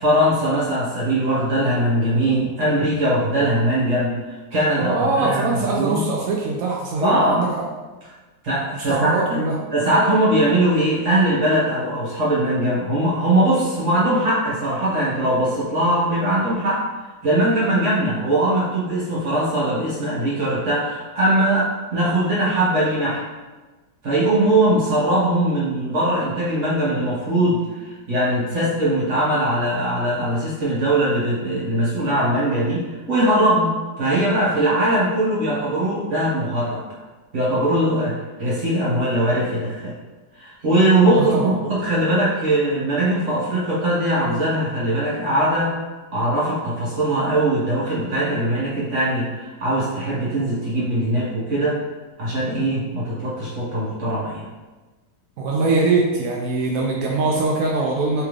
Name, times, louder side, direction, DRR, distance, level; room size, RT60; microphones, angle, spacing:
voice 1, 0.0-6.0 7.0-7.4 8.4-9.4 9.7-16.9 17.2-23.2 24.0-36.8 37.3-39.9 40.4-45.7 46.1-51.8 52.2-54.5, right 1 dB, 45° right, -7 dB, 1.7 m, -21 dB
voice 2, 4.7-7.6 8.9-9.5 41.2-41.5 55.4-58.2, right 3 dB, 75° right, -2 dB, 0.8 m, -22 dB
3.6 x 3.4 x 3.2 m, 1.2 s
omnidirectional pair, 1.9 m